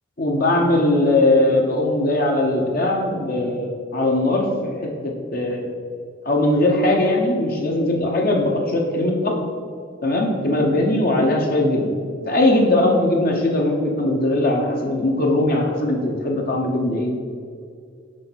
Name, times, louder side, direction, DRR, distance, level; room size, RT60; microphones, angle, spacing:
voice 1, 0.2-5.7 6.2-9.4 10.0-11.9 12.3-17.1, left 1 dB, 50° left, 1 dB, 0.9 m, -20 dB
6.4 x 4.5 x 6.1 m, 2.2 s
head